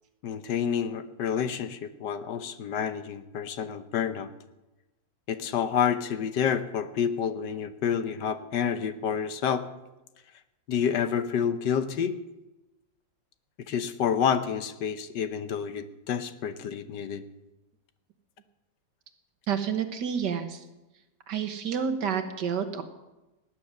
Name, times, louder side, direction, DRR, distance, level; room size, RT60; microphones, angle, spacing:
voice 1, 0.2-4.3 5.3-9.7 10.7-12.2 13.7-17.2, left 7 dB, 70° left, 11 dB, 1.5 m, -29 dB
voice 2, 19.5-20.6 21.3-22.8, right 7 dB, 70° right, 8 dB, 1.8 m, -29 dB
18.5 x 9.7 x 6.5 m, 1.0 s
omnidirectional pair, 1.9 m